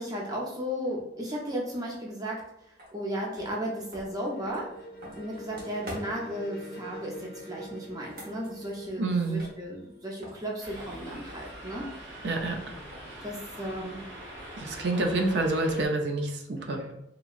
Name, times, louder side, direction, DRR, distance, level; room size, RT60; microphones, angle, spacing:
voice 1, 0.0-2.5 2.9-4.7 5.1-12.1 13.2-14.0, equal, 20° right, -2 dB, 0.6 m, -35 dB
sound 1, 2.8-2.9 3.3-6.4 7.9-9.9 10.2-13.3, equal, 55° right, 1.0 m, -46 dB
sound 2, 3.7-10.8, right 1 dB, 55° left, 0.5 m, -46 dB
voice 2, 9.0-9.4 12.2-12.8 14.6-16.9, right 2 dB, 75° right, 3 dB, 0.5 m, -28 dB
sound 3, 10.6-15.9, right 1 dB, 90° right, 0.9 m, -43 dB
2.9 x 2.6 x 2.4 m, 0.83 s
head